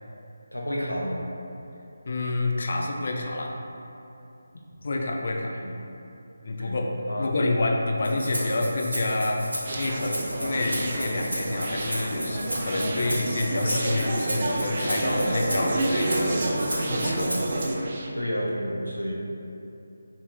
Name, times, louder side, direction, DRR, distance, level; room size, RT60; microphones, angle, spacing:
voice 1, 0.5-1.2 5.6-5.7 6.5-6.8 7.1-7.3 18.1-19.1, equal, 90° left, -3 dB, 0.7 m, -30 dB
voice 2, 2.1-3.5 4.8-5.5 6.4-6.8 7.2-9.5 9.7-16.5 16.8-17.3, left 2 dB, 45° left, 0 dB, 0.4 m, -28 dB
Rattle (instrument), 8.0-17.6, equal, 70° right, 0.9 m, -35 dB
Conversation, 9.7-18.1, right 1 dB, 35° right, 0.3 m, -29 dB
2.8 x 2.6 x 3.6 m, 2.8 s
figure-of-eight pair, 155°, 0 cm